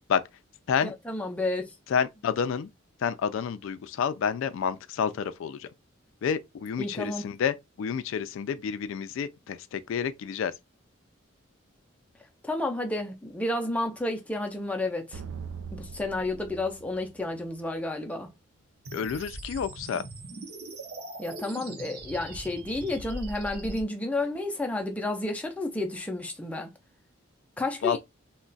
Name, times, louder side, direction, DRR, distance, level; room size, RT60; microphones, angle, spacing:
voice 1, 0.8-1.7 6.8-7.2 12.4-15.2 15.7-18.3 21.2-26.7 27.6-28.0, left 2 dB, 5° left, 0.4 m, -31 dB
voice 2, 1.9-2.7 3.0-5.7 6.2-10.5 18.9-20.0 27.8-28.0, left 7 dB, 75° left, 0.3 m, -29 dB
sound 1, 15.1-17.8, right 5 dB, 80° right, 0.3 m, -42 dB
sound 2, 18.8-23.8, right 2 dB, 50° right, 0.7 m, -41 dB
2.3 x 2.1 x 3.8 m
head